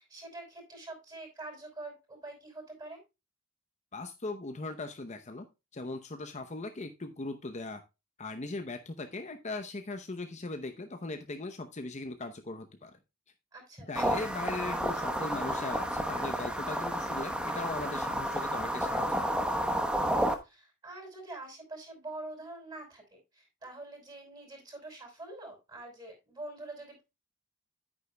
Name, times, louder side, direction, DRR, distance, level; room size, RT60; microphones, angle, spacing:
voice 1, 0.0-3.0 13.5-14.1 20.4-27.0, right 2 dB, 20° right, 1 dB, 5.6 m, -45 dB
voice 2, 3.9-5.5 5.7-7.8 8.2-13.0 13.9-19.4, left 2 dB, 35° left, 7 dB, 0.8 m, -39 dB
sound 1, 14.0-20.4, equal, 5° right, 1.0 m, -31 dB
10.0 x 9.3 x 2.2 m, 0.25 s
head